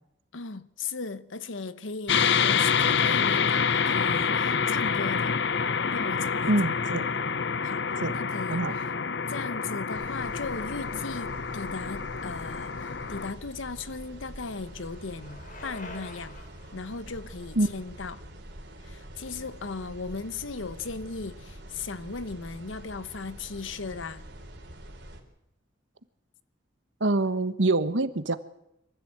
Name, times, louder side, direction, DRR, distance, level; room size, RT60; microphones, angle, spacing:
voice 1, 0.3-5.4 5.9-6.7 7.6-8.9 9.3-16.4 16.7-18.2 18.8-24.3, left 4 dB, 85° left, 1.0 m, -37 dB
sound 1, 2.1-13.3, left 6 dB, 60° left, 0.7 m, -27 dB
voice 2, 6.5-7.0 8.0-8.1 8.5-8.7 17.6-17.7 27.0-28.4, right 2 dB, 75° right, 1.3 m, -25 dB
sound 2, 9.9-25.2, right 1 dB, 60° right, 3.7 m, -45 dB
Bicycle, 13.2-19.2, left 2 dB, 45° left, 3.6 m, -49 dB
23.5 x 15.0 x 8.7 m
head